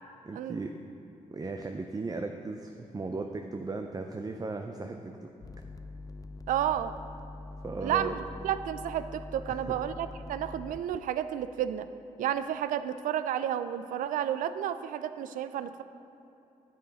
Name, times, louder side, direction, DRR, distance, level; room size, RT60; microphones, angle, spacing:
voice 1, 0.2-0.8 1.3-5.3 7.6-8.1 9.5-9.8, right 3 dB, 30° right, 5 dB, 0.5 m, -36 dB
sound 1, 5.4-11.0, left 2 dB, 25° left, 0.4 m, -44 dB
voice 2, 6.5-7.0 7.8-11.9 12.2-15.8, right 10 dB, 80° right, 12 dB, 0.4 m, -31 dB
8.9 x 7.7 x 4.1 m, 2.9 s
supercardioid pair, 55°, 14 cm